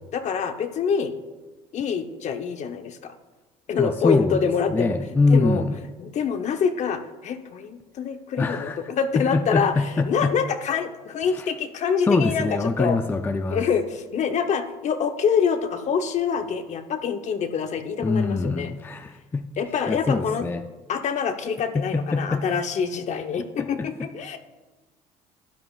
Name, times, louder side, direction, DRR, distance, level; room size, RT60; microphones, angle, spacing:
voice 1, 0.1-1.1 1.7-3.1 3.7-5.0 5.3-5.6 6.0-12.5 12.8-13.0 13.5-18.7 19.6-20.4 20.9-24.4, left 6 dB, 50° left, 7 dB, 0.9 m, -26 dB
voice 2, 3.8-5.8 8.4-8.9 9.2-10.3 11.3-11.5 12.0-13.6 18.0-19.5 19.9-20.7 21.7-22.5 23.6-24.1, left 3 dB, 15° left, 8 dB, 0.4 m, -24 dB
12.5 x 9.8 x 2.4 m, 1.2 s
supercardioid pair, 95°, 16 cm